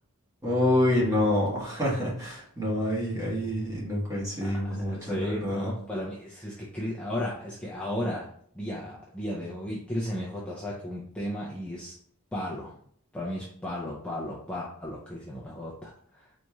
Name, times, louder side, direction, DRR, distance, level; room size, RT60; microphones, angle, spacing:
voice 1, 0.4-5.7, left 1 dB, 15° right, -6 dB, 1.3 m, -27 dB
voice 2, 4.9-8.3 8.5-12.0 12.3-12.7 13.1-16.3, left 1 dB, 5° left, -6 dB, 0.5 m, -34 dB
4.0 x 3.0 x 2.3 m, 0.63 s
head